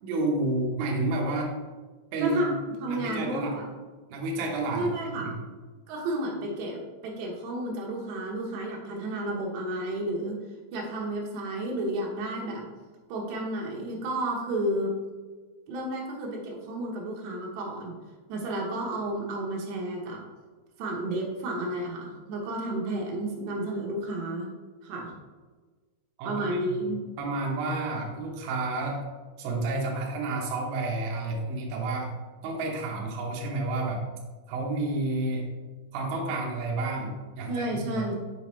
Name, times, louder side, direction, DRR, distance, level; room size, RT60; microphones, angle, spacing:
voice 1, 0.0-1.5 2.1-2.5 2.9-3.5 4.1-5.3 26.2-29.0 29.4-32.1 32.4-34.0 34.5-35.5 35.9-38.1, right 2 dB, 90° right, -1 dB, 2.1 m, -30 dB
voice 2, 2.2-2.5 2.8-3.7 4.7-5.4 5.9-10.4 10.7-12.7 13.1-14.9 15.7-17.9 18.3-20.2 20.8-24.5 24.8-25.1 26.2-27.0 37.5-38.1, right 1 dB, 75° right, -1 dB, 2.8 m, -31 dB
6.7 x 5.6 x 3.1 m, 1.4 s
omnidirectional pair, 5.8 m